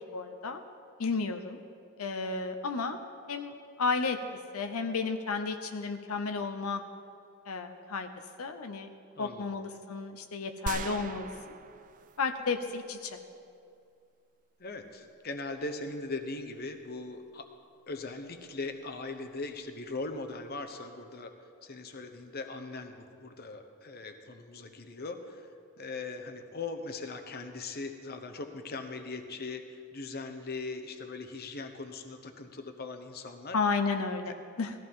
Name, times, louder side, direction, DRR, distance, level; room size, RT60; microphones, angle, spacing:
voice 1, 0.1-0.6 1.0-1.6 2.0-3.0 3.3-4.2 4.5-6.8 7.5-8.1 8.4-8.9 9.2-11.3 12.2-13.2 33.5-34.7, left 4 dB, 85° left, 6 dB, 0.8 m, -32 dB
voice 2, 9.2-9.5 14.6-17.5 17.9-21.3 21.6-25.5 25.8-33.6 34.2-34.3, left 3 dB, 45° left, 6 dB, 1.0 m, -40 dB
sound 1, 10.7-12.6 12.9-13.0, right 4 dB, 35° right, 0.4 m, -40 dB
18.5 x 14.5 x 3.7 m, 2.4 s
head